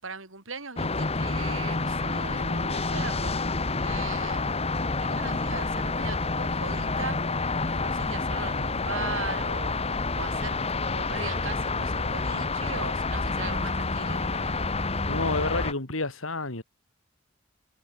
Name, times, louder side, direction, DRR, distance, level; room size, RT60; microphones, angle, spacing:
voice 1, 0.0-4.4 5.0-7.2 7.6-9.7 10.2-10.6 10.8-14.7, right 4 dB, 75° right, 5.7 m, -39 dB
sound 1, 0.8-15.7, left 3 dB, 30° left, 1.5 m, -28 dB
voice 2, 15.1-16.6, left 3 dB, 90° left, 3.2 m, -29 dB
head